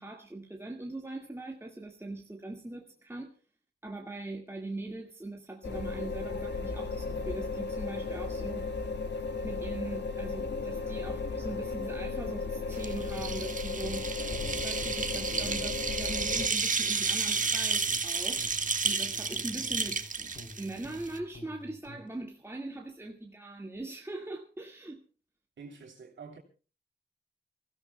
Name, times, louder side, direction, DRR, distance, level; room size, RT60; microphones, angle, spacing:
voice 1, 0.0-3.3 3.8-8.7 9.4-14.1 14.6-18.4 18.8-20.0 20.6-25.0, right 2 dB, 15° right, 1.8 m, -41 dB
sound 1, 5.6-16.5, left 4 dB, 70° left, 2.1 m, -35 dB
sound 2, 12.8-21.2, right 4 dB, 45° right, 1.4 m, -31 dB
sound 3, 14.3-16.0 16.3-18.1 18.4-22.1, left 1 dB, 45° left, 3.0 m, -48 dB
voice 2, 25.6-26.4, right 5 dB, 85° right, 3.1 m, -47 dB
28.5 x 16.0 x 2.2 m
wide cardioid pair, 110°, 19 cm